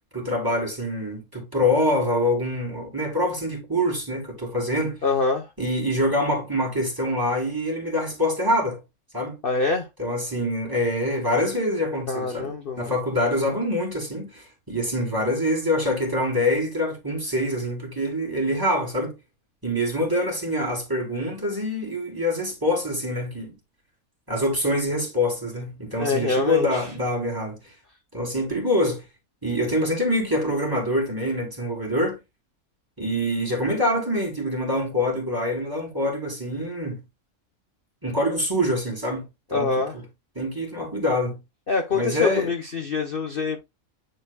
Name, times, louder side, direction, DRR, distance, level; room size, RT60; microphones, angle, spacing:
voice 1, 0.1-5.0 5.6-8.8 9.1-9.4 10.0-19.1 19.6-23.5 24.3-27.7 28.1-29.0 29.4-32.2 33.0-37.0 38.0-39.7 40.3-41.4 41.9-42.5, left 1 dB, 15° right, 3.0 m, -25 dB
voice 2, 5.0-5.5 9.4-9.9 12.1-12.9 25.9-26.9 39.5-40.0 41.7-43.6, left 4 dB, 45° left, 1.0 m, -25 dB
9.9 x 4.4 x 2.3 m
omnidirectional pair, 1.5 m